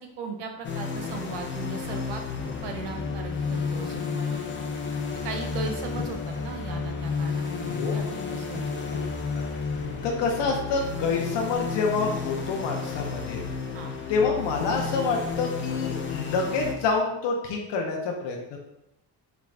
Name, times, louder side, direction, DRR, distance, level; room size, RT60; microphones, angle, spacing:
voice 1, 0.0-2.3 2.6-4.7 5.2-8.9 13.7-13.9, right 4 dB, 80° right, 4 dB, 0.8 m, -38 dB
sound 1, 0.6-16.7, left 5 dB, 30° left, 0.6 m, -32 dB
voice 2, 7.7-8.0 8.9-9.0 9.3-9.4 10.0-13.4 14.1-18.4, left 4 dB, 80° left, 0 dB, 0.8 m, -27 dB
5.0 x 2.4 x 3.2 m, 0.84 s
cardioid pair, 95°, 42 cm